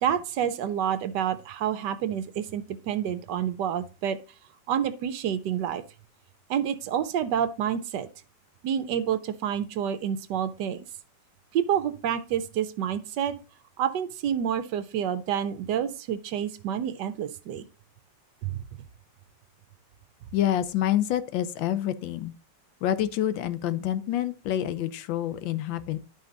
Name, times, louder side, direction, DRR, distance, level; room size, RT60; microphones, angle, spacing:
voice 1, 0.0-4.2 4.7-5.8 6.5-8.1 8.6-10.8 11.5-13.4 13.8-17.6 18.4-18.6, right 9 dB, 70° right, 1.2 m, -28 dB
voice 2, 20.3-22.3 22.8-26.0, left 11 dB, 85° left, 1.4 m, -27 dB
10.5 x 5.3 x 3.8 m
omnidirectional pair, 2.0 m